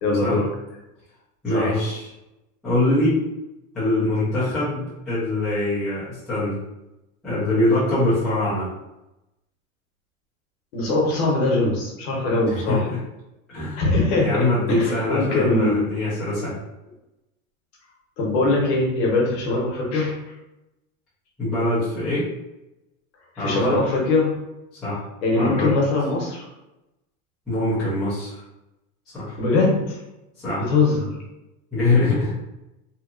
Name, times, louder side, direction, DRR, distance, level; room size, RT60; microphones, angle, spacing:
voice 1, 0.0-0.5 1.5-1.7 10.7-12.8 13.8-15.9 18.2-20.2 23.4-24.3 25.2-26.4 29.4-30.0 30.7-31.1, left 2 dB, 50° left, -3 dB, 0.9 m, -21 dB
voice 2, 1.4-2.1 2.6-3.2 3.7-6.6 7.2-8.7 12.5-13.0 13.5-13.8 14.2-16.5 21.4-22.3 23.4-23.8 24.8-25.0 25.3-25.7 27.5-28.3 29.1-29.4 30.4-30.7 31.7-32.3, left 2 dB, ahead, -15 dB, 0.4 m, -23 dB
2.9 x 2.2 x 2.4 m, 0.94 s
supercardioid pair, 170°, 41 cm